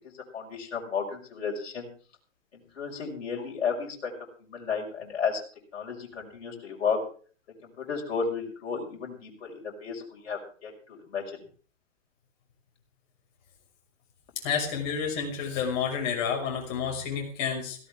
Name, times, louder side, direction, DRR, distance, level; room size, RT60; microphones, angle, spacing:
voice 1, 0.3-1.9 2.5-4.1 4.4-5.4 5.7-7.0 7.8-11.2, left 6 dB, 55° left, -2 dB, 5.7 m, -33 dB
voice 2, 14.4-17.8, left 7 dB, 35° left, 1 dB, 6.0 m, -30 dB
17.5 x 16.5 x 3.7 m, 0.41 s
figure-of-eight pair, 120°, 39 cm